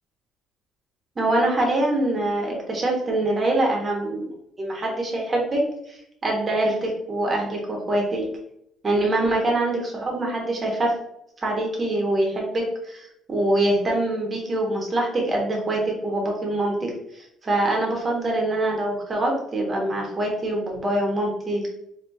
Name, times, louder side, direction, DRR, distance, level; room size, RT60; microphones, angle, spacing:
voice 1, 1.2-4.3 4.6-5.6 5.9-8.2 8.8-10.9 11.4-21.7, right 1 dB, 25° right, -1 dB, 1.2 m, -24 dB
4.4 x 3.0 x 2.7 m, 0.76 s
cardioid pair, 125°, 0 cm